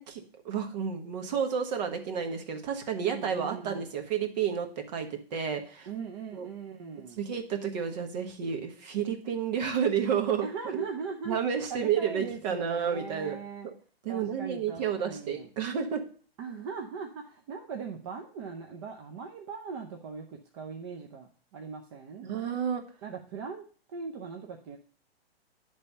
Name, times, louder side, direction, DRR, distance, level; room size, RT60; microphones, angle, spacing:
voice 1, 0.0-5.9 6.3-6.5 7.2-10.5 10.7-10.8 11.3-13.4 14.0-16.0 22.2-22.8, right 7 dB, 45° right, 5 dB, 1.2 m, -31 dB
voice 2, 3.0-3.8 5.9-7.2 10.4-11.4 11.7-13.7 14.1-15.5 16.4-22.3 23.0-23.6 23.9-24.8, right 5 dB, 30° right, 2 dB, 0.6 m, -40 dB
9.6 x 3.4 x 5.4 m, 0.42 s
hypercardioid pair, 150°, 31 cm